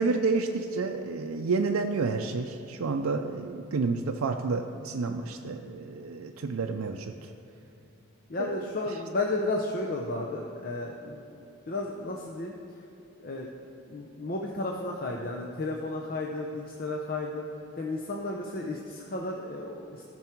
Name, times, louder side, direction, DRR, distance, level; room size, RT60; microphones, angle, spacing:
voice 1, 0.0-7.3 8.4-8.6, right 4 dB, 85° right, 3 dB, 0.5 m, -30 dB
voice 2, 8.3-12.8 13.2-13.5 13.9-20.0, left 2 dB, 45° left, 0 dB, 0.7 m, -33 dB
14.0 x 6.1 x 4.5 m, 2.9 s
head